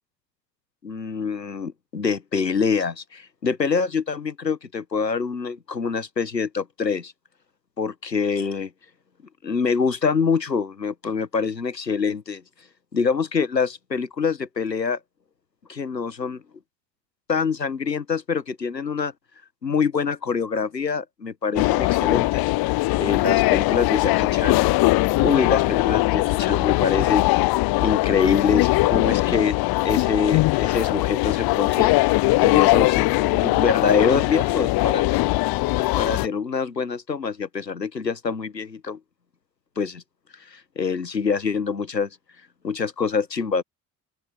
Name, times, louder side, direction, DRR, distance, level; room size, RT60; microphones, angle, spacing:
voice 1, 0.8-7.1 7.8-8.7 9.4-12.4 12.9-15.0 15.7-16.4 17.3-19.1 19.6-22.5 23.0-24.7 25.2-27.4 27.8-29.6 29.8-35.1 35.8-39.0 39.8-40.0 40.5-42.1 42.6-43.6, left 5 dB, 90° left, 1.6 m, -25 dB
sound 1, 21.6-36.3, left 21 dB, 50° left, 0.8 m, -20 dB
open air
figure-of-eight pair, 50°, 48 cm